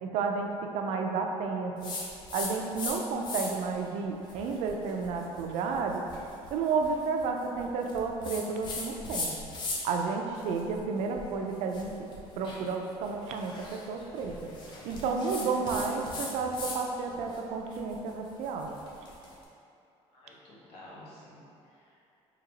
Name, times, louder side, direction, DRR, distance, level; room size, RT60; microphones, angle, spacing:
voice 1, 0.0-1.9 2.3-6.0 6.5-9.3 9.8-11.9 12.4-13.5 13.9-14.3 14.8-18.8, right 4 dB, 70° right, 3 dB, 0.4 m, -31 dB
sound 1, 1.8-3.0 3.2-3.7 4.2-10.0 10.4-16.8 17.1-19.3, left 3 dB, 40° left, 0.5 m, -39 dB
voice 2, 20.1-22.1, left 1 dB, 60° left, -6 dB, 0.9 m, -52 dB
3.9 x 2.8 x 2.8 m, 2.7 s
cardioid pair, 160°, 12 cm